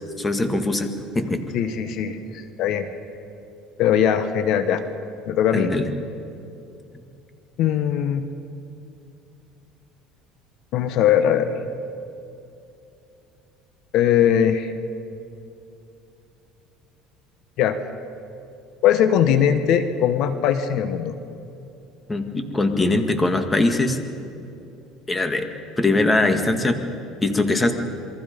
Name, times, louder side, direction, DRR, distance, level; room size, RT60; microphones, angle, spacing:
voice 1, 0.2-0.9 1.2-1.4 5.5-5.9 22.1-24.0 25.1-25.5 25.8-26.8 27.2-27.7, left 2 dB, 15° left, 6 dB, 1.9 m, -21 dB
voice 2, 1.5-2.9 3.8-4.8 5.3-5.7 7.6-8.3 10.7-11.5 13.9-14.7 17.6-17.8 18.8-21.1, left 9 dB, 65° left, 10 dB, 1.3 m, -20 dB
27.5 x 22.5 x 5.4 m, 2.7 s
cardioid pair, 120°, 0 cm